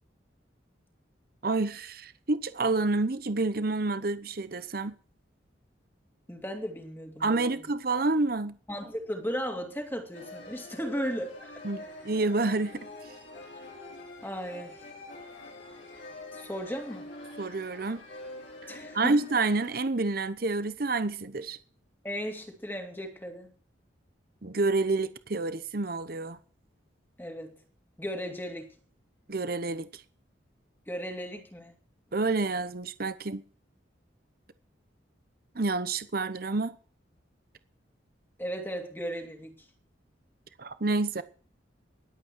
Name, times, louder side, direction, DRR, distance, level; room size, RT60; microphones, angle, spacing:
voice 1, 1.4-5.0 7.2-8.6 11.6-12.9 17.4-18.0 18.9-21.6 24.4-26.4 29.3-29.9 32.1-33.4 35.5-36.8 40.6-41.2, right 3 dB, 50° right, 0.9 m, -28 dB
voice 2, 6.3-7.6 8.7-11.5 14.2-14.9 16.3-17.1 18.7-19.2 22.0-23.5 27.2-27.5 28.0-28.7 30.9-31.7 38.4-39.6, equal, 10° left, 2.4 m, -36 dB
sound 1, 10.1-19.7, left 2 dB, 75° left, 5.2 m, -45 dB
21.0 x 8.4 x 4.6 m
head